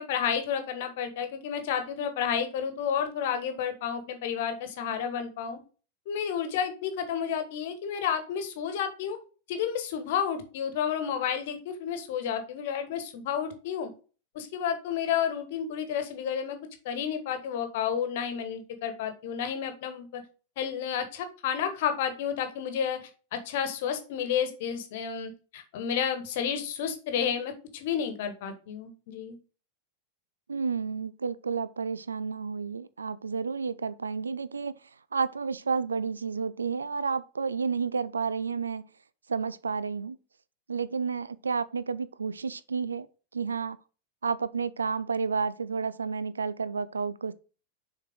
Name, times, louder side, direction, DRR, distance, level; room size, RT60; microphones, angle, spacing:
voice 1, 0.0-5.6 6.1-9.2 9.5-13.9 14.3-16.6 16.8-20.2 20.6-23.0 23.3-29.4, left 8 dB, 50° left, 1.3 m, -31 dB
voice 2, 30.5-34.7 35.1-38.8 39.3-40.2 40.7-43.1 43.3-43.8 44.2-47.3, right 5 dB, 75° right, 0.4 m, -31 dB
6.8 x 4.6 x 3.6 m
figure-of-eight pair, 90°, 0 cm